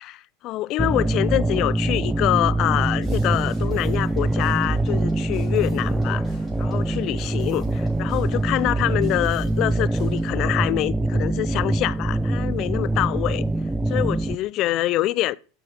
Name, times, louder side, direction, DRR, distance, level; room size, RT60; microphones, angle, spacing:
voice 1, 0.0-6.3 6.6-13.4 13.9-15.4, left 16 dB, 50° left, 0.4 m, -25 dB
sound 1, 0.8-14.3, right 2 dB, 5° right, 0.6 m, -24 dB
sound 2, 3.0-10.4, right 1 dB, 25° right, 5.4 m, -46 dB
9.6 x 6.5 x 3.6 m
hypercardioid pair, 95°, 0 cm